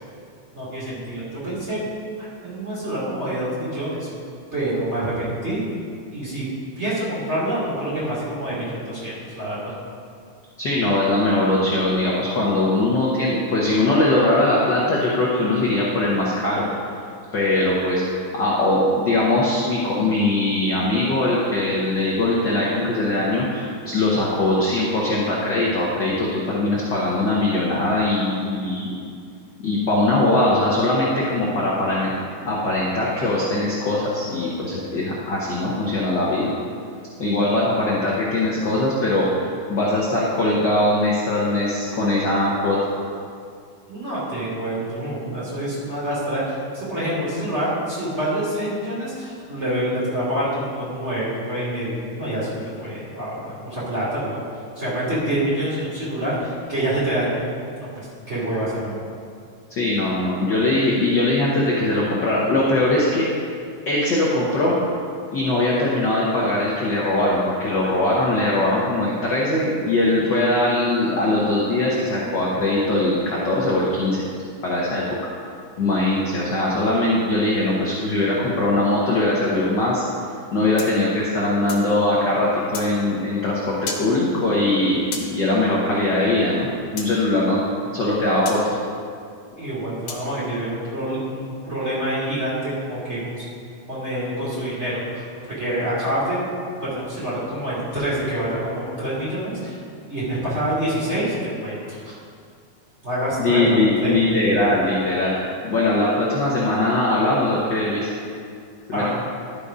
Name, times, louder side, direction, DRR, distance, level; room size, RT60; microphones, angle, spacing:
voice 1, 0.5-1.8 2.2-4.1 4.5-5.6 6.1-6.5 6.8-9.7 43.9-54.4 54.8-59.0 89.6-93.5 93.9-96.4 96.8-99.8 100.1-102.1 103.0-103.8 104.0-104.4 108.9-109.1, right 1 dB, 25° right, -9 dB, 2.6 m, -26 dB
voice 2, 10.6-16.7 17.3-28.9 29.6-32.1 32.4-36.5 37.2-39.3 39.7-42.8 59.7-63.2 63.9-64.7 65.3-74.2 74.6-75.0 75.8-80.0 80.5-86.7 86.9-87.6 87.9-88.7 103.4-105.3 105.6-108.1 108.9-109.1, left 2 dB, 55° left, -5 dB, 1.3 m, -21 dB
sound 1, 80.8-81.9 82.7-82.9 83.9-84.1 85.1-85.3 87.0-87.1 88.5-88.6 90.1-90.3, left 5 dB, 80° left, 2.5 m, -32 dB
12.0 x 5.4 x 5.0 m, 2.3 s
omnidirectional pair, 3.4 m